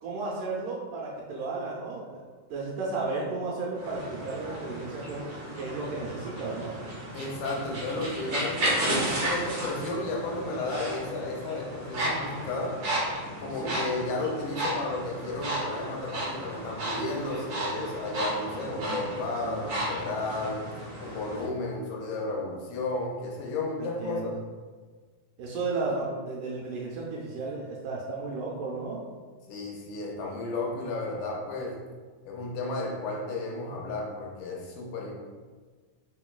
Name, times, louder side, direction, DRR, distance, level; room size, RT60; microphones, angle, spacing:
voice 1, 0.0-2.2 2.5-6.7 13.6-13.8 18.5-19.0 19.4-19.7 23.8-24.4 25.4-29.0, right 3 dB, 85° right, -4 dB, 2.2 m, -34 dB
sound 1, 3.8-21.5, right 1 dB, 70° right, 1.4 m, -33 dB
voice 2, 7.1-12.8 13.4-20.7 21.0-24.3 29.5-31.8 32.3-35.1, left 2 dB, 85° left, -1 dB, 2.1 m, -33 dB
4.4 x 3.8 x 2.2 m, 1.5 s
omnidirectional pair, 3.8 m